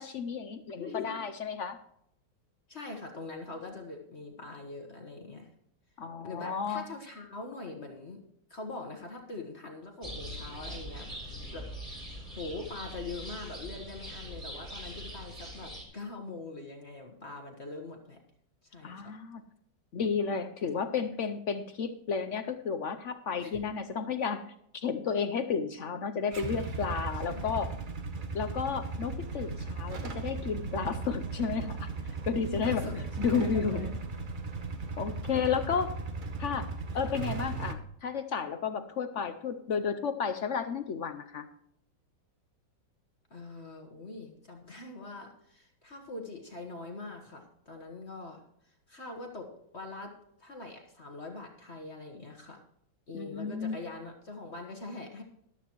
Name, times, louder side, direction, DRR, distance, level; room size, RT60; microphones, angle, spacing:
voice 1, 0.0-1.8 6.0-6.8 18.8-19.4 19.9-24.4 24.7-27.7 28.3-31.9 32.3-32.8 33.2-34.0 35.0-35.9 36.4-36.7 36.9-41.5 53.1-53.8, left 6 dB, 60° left, 9 dB, 0.8 m, -32 dB
voice 2, 0.8-1.2 2.7-5.5 6.2-8.2 8.5-11.1 11.5-12.1 12.4-18.2 18.6-19.1 23.4-23.6 27.3-27.6 32.5-33.0 33.3-33.9 35.3-35.8 36.9-37.1 43.3-50.1 50.4-52.6 53.1-55.2, left 3 dB, 40° left, 2 dB, 1.5 m, -43 dB
sound 1, 10.0-15.8, equal, 25° right, 3.6 m, -42 dB
Motorcycle / Engine starting / Idling, 26.3-37.7, right 4 dB, 45° right, 0.7 m, -37 dB
13.5 x 12.0 x 3.0 m, 0.71 s
omnidirectional pair, 1.9 m